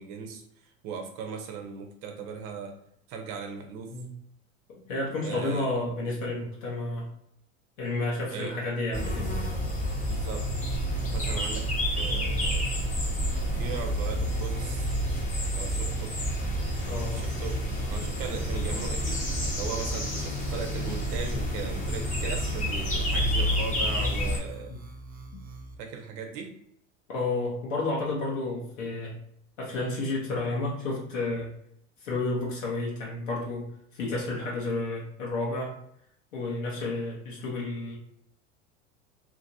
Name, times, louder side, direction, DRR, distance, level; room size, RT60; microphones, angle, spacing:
voice 1, 0.0-2.7 3.1-4.0 5.2-5.7 8.3-8.6 10.0-10.5 11.1-11.7 12.0-12.8 13.5-14.9 15.5-16.2 17.1-19.3 19.5-24.7 25.8-26.5, right 6 dB, 55° right, 4 dB, 0.9 m, -38 dB
voice 2, 4.7-7.1 7.8-9.3 16.8-17.2 24.7-24.8 27.1-29.1 29.6-31.5 32.0-33.7 33.9-35.7 36.3-38.0, left 2 dB, 80° left, -4 dB, 1.1 m, -31 dB
sound 1, 8.9-24.4, equal, 20° left, 0.9 m, -29 dB
sound 2, 10.4-25.7, right 4 dB, 25° right, 0.4 m, -44 dB
2.9 x 2.7 x 2.7 m, 0.72 s
hypercardioid pair, 85°, 39 cm